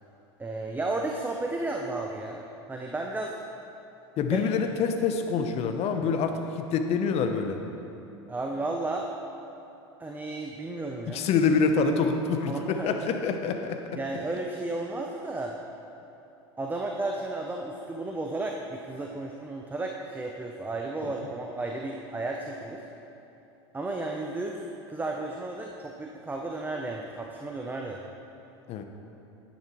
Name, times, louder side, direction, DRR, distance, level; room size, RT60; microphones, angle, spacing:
voice 1, 0.4-3.3 4.3-4.4 8.3-9.1 10.0-11.3 12.5-13.3 14.0-15.5 16.6-22.8 23.7-24.6 24.9-28.0, right 2 dB, 15° right, 1 dB, 0.7 m, -33 dB
voice 2, 4.2-7.6 11.1-14.0 21.2-21.3 28.7-28.8, left 5 dB, 45° left, 6 dB, 0.9 m, -26 dB
10.5 x 10.0 x 3.1 m, 2.9 s
hypercardioid pair, 90°, 14 cm